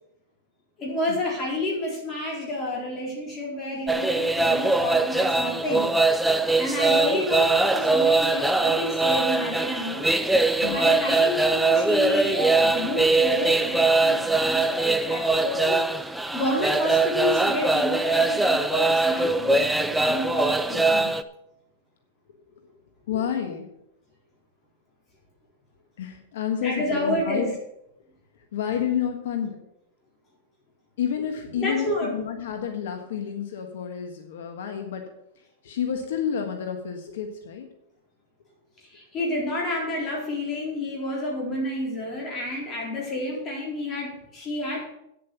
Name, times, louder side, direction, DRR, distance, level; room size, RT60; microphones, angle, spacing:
voice 1, 0.8-5.9 6.6-21.1 26.6-27.5 31.6-32.1 38.8-44.8, left 1 dB, 20° left, -2 dB, 4.0 m, -30 dB
sound 1, 3.9-21.2, right 3 dB, 5° right, 0.4 m, -22 dB
voice 2, 23.1-23.7 26.0-27.5 28.5-29.6 31.0-35.0 35.4-37.7, left 8 dB, 70° left, 5 dB, 1.5 m, -30 dB
9.1 x 7.7 x 6.9 m, 0.81 s
supercardioid pair, 165°, 0 cm